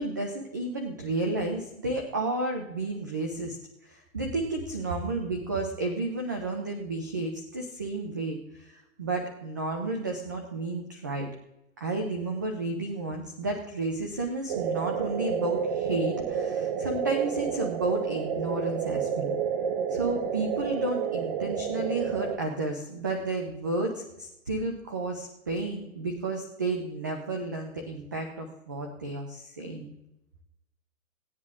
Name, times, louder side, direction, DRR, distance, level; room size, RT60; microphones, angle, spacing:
voice 1, 0.0-3.6 3.8-11.3 11.8-19.3 19.9-29.9, right 2 dB, 15° right, 3 dB, 0.3 m, -32 dB
sound 1, 14.5-22.4, right 7 dB, 40° right, 0.8 m, -30 dB
17.0 x 9.6 x 3.5 m, 0.93 s
hypercardioid pair, 140°, 43 cm